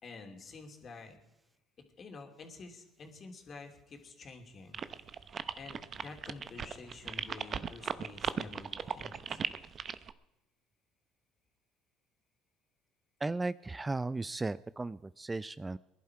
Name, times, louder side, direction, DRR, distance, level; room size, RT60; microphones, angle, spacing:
voice 1, 0.0-1.2 1.8-4.8 5.5-9.4, left 3 dB, 40° left, 4 dB, 3.0 m, -49 dB
sound 1, 4.7-10.1, right 7 dB, 40° right, 0.9 m, -37 dB
voice 2, 13.2-15.8, right 3 dB, 15° right, 16 dB, 0.4 m, -35 dB
21.5 x 11.5 x 4.8 m, 0.93 s
supercardioid pair, 75°, 0 cm